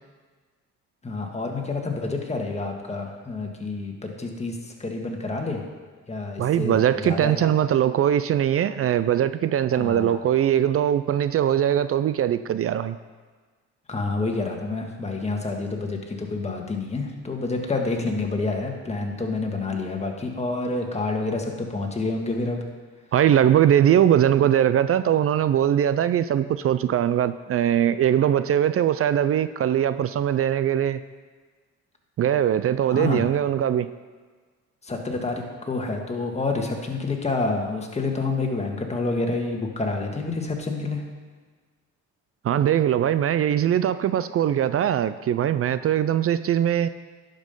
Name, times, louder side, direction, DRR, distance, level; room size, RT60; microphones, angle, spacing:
voice 1, 1.0-5.6 6.1-7.5 9.7-10.2 13.9-22.6 32.9-33.2 34.8-41.0, left 3 dB, 20° left, 2 dB, 1.6 m, -28 dB
voice 2, 6.4-13.0 23.1-31.0 32.2-33.9 42.4-46.9, right 10 dB, 50° right, 13 dB, 0.4 m, -21 dB
11.0 x 5.4 x 5.4 m, 1.4 s
cardioid pair, 90°, 30 cm